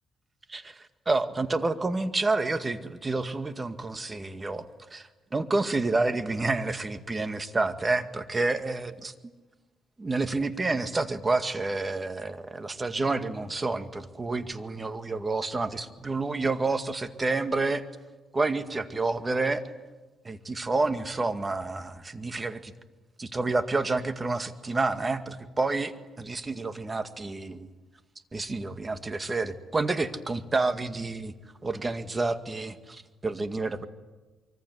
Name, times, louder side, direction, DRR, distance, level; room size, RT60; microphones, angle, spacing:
voice 1, 0.5-4.7 4.9-9.1 10.0-17.9 18.3-19.6 20.2-22.7 23.2-27.7 28.3-31.3 31.6-33.9, right 3 dB, 25° right, 9 dB, 2.0 m, -29 dB
25.5 x 24.0 x 9.5 m, 1.2 s
cardioid pair, 85°, 0 cm